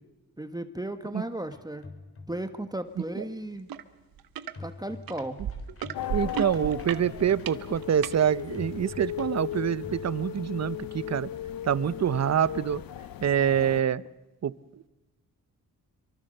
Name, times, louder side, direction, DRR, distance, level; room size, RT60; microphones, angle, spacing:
voice 1, 0.4-1.9 2.3-3.7 4.6-5.4, right 1 dB, 10° right, 8 dB, 1.6 m, -35 dB
sound 1, 1.5-2.6 4.5-10.1, left 3 dB, 40° left, 4.1 m, -47 dB
sound 2, 3.7-3.8 4.2-4.5 5.1-8.2 8.9-9.0, right 8 dB, 90° right, 1.2 m, -34 dB
sound 3, 5.9-13.8, left 11 dB, 75° left, 0.8 m, -37 dB
voice 2, 6.1-11.3 11.6-12.8 13.2-14.0 14.4-14.5, right 9 dB, 50° right, 19 dB, 0.8 m, -26 dB
24.5 x 24.0 x 6.7 m, 1.0 s
cardioid pair, 80°, 34 cm